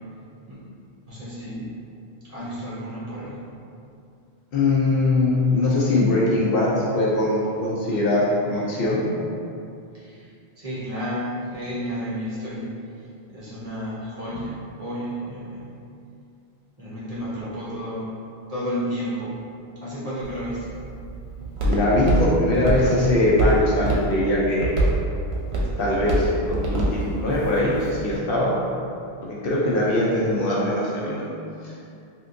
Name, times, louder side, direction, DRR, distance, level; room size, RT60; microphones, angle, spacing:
voice 1, 1.1-1.7 2.2-3.4 9.9-10.3 10.6-12.7 13.3-15.7 16.8-18.1 18.5-19.4 19.8-20.7 23.8-23.9, equal, 40° right, -10 dB, 0.9 m, -32 dB
voice 2, 4.5-9.0 21.7-24.7 25.8-28.5 29.4-31.2, left 2 dB, 65° left, -6 dB, 0.7 m, -21 dB
Walk footsteps, 20.2-28.2, right 2 dB, 80° right, 0.9 m, -26 dB
3.3 x 2.7 x 2.5 m, 2.6 s
omnidirectional pair, 1.1 m